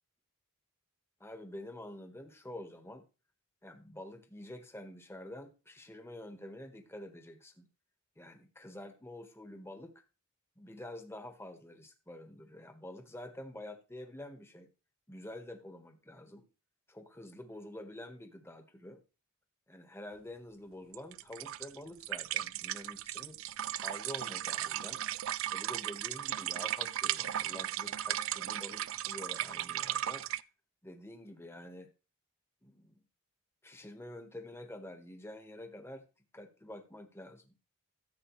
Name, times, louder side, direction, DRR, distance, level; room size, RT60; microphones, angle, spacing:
voice 1, 1.2-3.1 3.6-7.7 8.2-9.9 10.6-14.7 15.1-16.4 16.9-19.0 19.7-23.4 23.8-25.0 25.5-30.3 30.8-31.9 32.6-33.0 33.6-36.1 36.3-37.6, left 1 dB, 10° left, 5 dB, 1.4 m, -48 dB
sound 1, 20.9-30.4, right 12 dB, 65° right, 0.4 m, -36 dB
14.5 x 8.0 x 3.2 m, 0.32 s
head